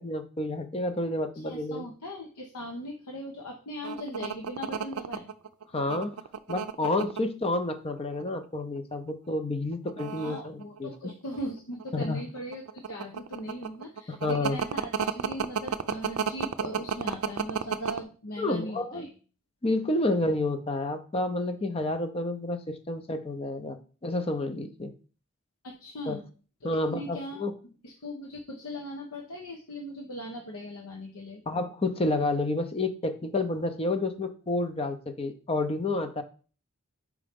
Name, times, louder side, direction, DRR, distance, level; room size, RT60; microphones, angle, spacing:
voice 1, 0.0-1.8 5.7-6.1 6.5-10.9 11.9-12.2 14.1-14.6 18.4-19.1 19.6-24.9 26.1-26.2 26.6-27.5 31.5-36.2, left 2 dB, 25° left, 9 dB, 0.6 m, -30 dB
voice 2, 1.3-5.3 10.2-19.1 25.6-26.2 26.6-27.5 27.8-31.4, equal, 85° left, 1 dB, 1.0 m, -39 dB
sound 1, 3.8-7.2 8.0-8.5 8.8-8.9 9.7-11.4 11.8-18.0, right 7 dB, 75° right, 0.4 m, -31 dB
4.9 x 4.2 x 5.1 m, 0.38 s
head